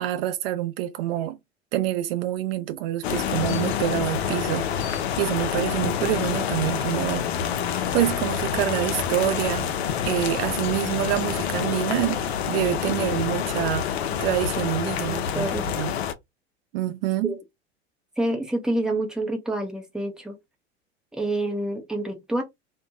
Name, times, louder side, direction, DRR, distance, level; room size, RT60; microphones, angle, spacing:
voice 1, 0.0-1.4 1.7-7.2 7.9-9.7 10.1-12.2 12.5-15.9 16.7-17.3, right 13 dB, 60° right, 0.4 m, -27 dB
Forest light rain, 3.0-16.1, left 8 dB, 70° left, 0.5 m, -27 dB
voice 2, 15.1-15.7 17.2-17.4 18.2-20.4 21.1-22.4, right 1 dB, ahead, 0.7 m, -27 dB
2.6 x 2.2 x 2.6 m
figure-of-eight pair, 80°, 33 cm